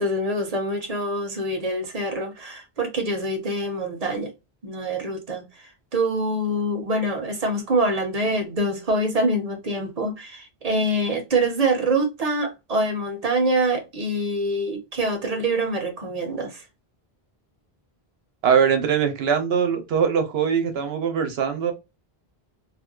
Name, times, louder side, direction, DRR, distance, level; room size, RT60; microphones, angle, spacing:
voice 1, 0.0-4.3 4.6-16.6, right 1 dB, 45° right, 0.7 m, -25 dB
voice 2, 18.4-21.7, right 7 dB, 90° right, 0.9 m, -22 dB
2.6 x 2.2 x 2.3 m
omnidirectional pair, 1.0 m